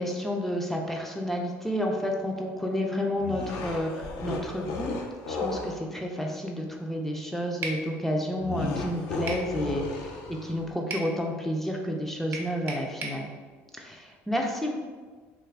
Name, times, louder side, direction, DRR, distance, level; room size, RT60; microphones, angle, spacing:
voice 1, 0.0-4.9 5.3-10.2 10.4-13.3 13.7-14.8, equal, 5° left, 0 dB, 0.3 m, -30 dB
sound 1, 3.2-5.8 8.4-10.7, left 3 dB, 75° left, 0.4 m, -34 dB
sound 2, 7.6-7.8 9.3-9.5 10.9-11.1 12.3-13.2, right 3 dB, 50° right, 0.5 m, -35 dB
2.5 x 2.4 x 3.3 m, 1.4 s
cardioid pair, 120°, 5 cm